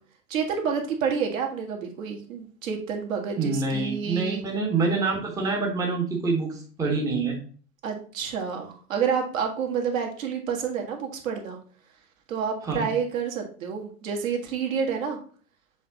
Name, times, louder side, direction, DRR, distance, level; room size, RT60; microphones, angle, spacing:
voice 1, 0.3-4.4 7.8-11.6 12.3-15.2, right 6 dB, 55° right, 2 dB, 1.7 m, -29 dB
voice 2, 3.3-7.4 12.6-12.9, right 4 dB, 5° right, 0 dB, 0.9 m, -26 dB
7.3 x 3.5 x 3.8 m, 0.42 s
figure-of-eight pair, 100°, 48 cm